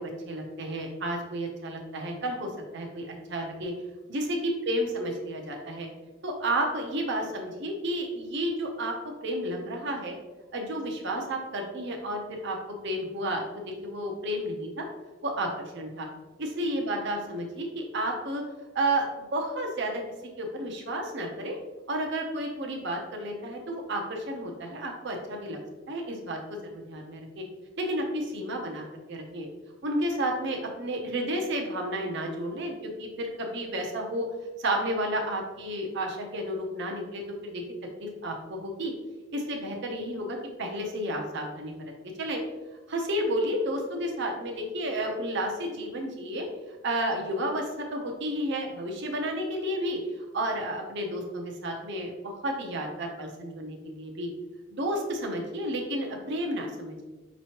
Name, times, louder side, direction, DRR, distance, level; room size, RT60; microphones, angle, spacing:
voice 1, 0.0-3.7 4.1-5.9 6.2-9.0 9.2-10.1 10.5-12.6 12.8-14.9 15.2-16.1 16.4-18.4 18.7-20.0 20.4-21.6 21.9-25.6 25.9-27.4 27.8-29.5 29.8-34.3 34.6-37.6 38.0-38.9 39.3-41.8 42.2-42.4 42.9-50.0 50.3-54.3 54.7-57.0, right 1 dB, 60° right, 2 dB, 0.7 m, -31 dB
5.3 x 3.1 x 2.9 m, 1.2 s
head